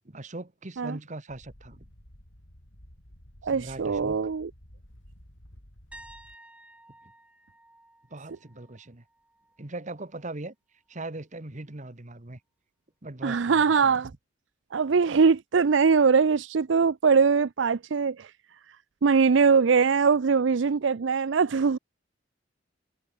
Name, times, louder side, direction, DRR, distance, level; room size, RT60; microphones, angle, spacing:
voice 1, 0.1-1.9 3.4-4.2 8.1-9.0 9.6-10.6 10.9-12.4 13.0-14.0, right 2 dB, 40° right, 1.6 m, -40 dB
sound 1, 1.3-6.4, equal, 80° left, 5.9 m, -52 dB
voice 2, 3.4-4.5 13.2-14.1 14.7-18.3 19.0-21.8, right 5 dB, 70° right, 0.5 m, -22 dB
sound 2, 5.9-9.7 10.0-10.3 13.2-13.3, right 1 dB, 5° right, 6.3 m, -53 dB
head